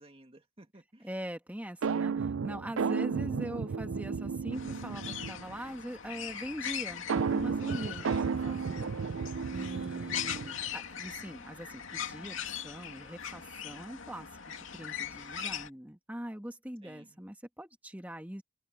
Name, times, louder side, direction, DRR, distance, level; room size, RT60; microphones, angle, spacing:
voice 1, 0.0-1.1 8.1-8.7 16.8-17.2, right 1 dB, 25° right, 2.0 m, -56 dB
voice 2, 1.0-8.2 8.4-8.9 9.5-18.4, equal, 5° right, 1.9 m, -42 dB
sound 1, 1.8-5.5 7.1-10.7, right 5 dB, 75° right, 0.5 m, -33 dB
sound 2, 4.5-15.7, left 8 dB, 70° left, 2.6 m, -41 dB
head